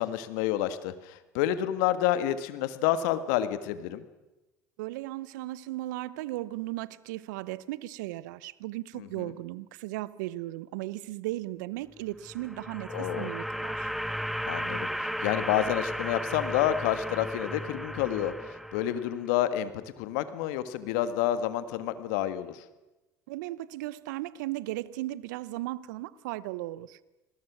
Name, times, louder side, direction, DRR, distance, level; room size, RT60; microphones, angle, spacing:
voice 1, 0.0-4.0 9.0-9.3 12.9-13.3 14.5-22.6, left 12 dB, 75° left, 1.8 m, -29 dB
voice 2, 4.8-13.9 23.3-27.0, right 17 dB, 75° right, 0.9 m, -36 dB
sound 1, 12.2-19.3, equal, ahead, 1.0 m, -35 dB
28.5 x 21.0 x 6.3 m
hypercardioid pair, 65°, 10 cm